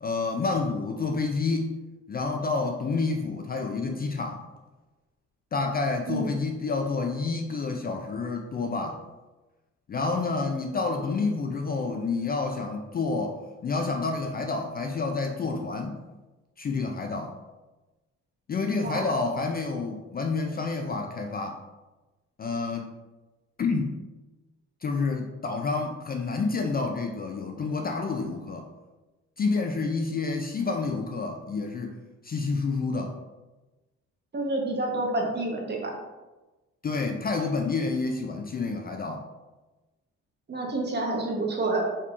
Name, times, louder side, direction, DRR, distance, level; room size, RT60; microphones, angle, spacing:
voice 1, 0.0-1.8 2.1-4.4 5.5-9.0 9.9-16.0 16.6-17.3 18.5-21.6 22.4-22.9 23.6-24.0 24.8-28.7 29.4-31.9 32.2-33.2 36.8-39.2, left 4 dB, 30° left, 3 dB, 0.4 m, -29 dB
voice 2, 34.3-35.9 40.5-41.8, right 2 dB, 35° right, -1 dB, 1.0 m, -28 dB
4.4 x 3.5 x 2.4 m, 1.1 s
cardioid pair, 90°, 30 cm